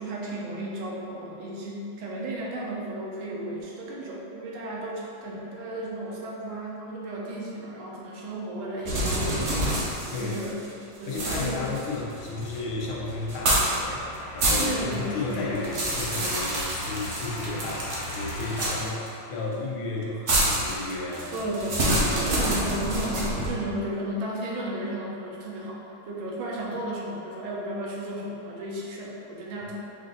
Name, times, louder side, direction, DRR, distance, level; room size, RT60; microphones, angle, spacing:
voice 1, 0.0-9.6 10.2-10.6 11.0-11.6 14.6-15.6 21.3-29.8, right 1 dB, 80° right, -3 dB, 1.5 m, -34 dB
sound 1, 8.9-10.7 11.1-12.6 13.3-13.8 14.1-15.0 15.3-19.1 20.3-23.5, right 1 dB, 60° right, 0.7 m, -27 dB
voice 2, 10.1-10.4 11.1-21.4 22.1-22.8, left 3 dB, 90° left, -3 dB, 1.6 m, -33 dB
sound 2, 11.1-18.8, left 1 dB, 70° left, 1.4 m, -39 dB
5.4 x 2.5 x 3.9 m, 2.8 s
omnidirectional pair, 2.3 m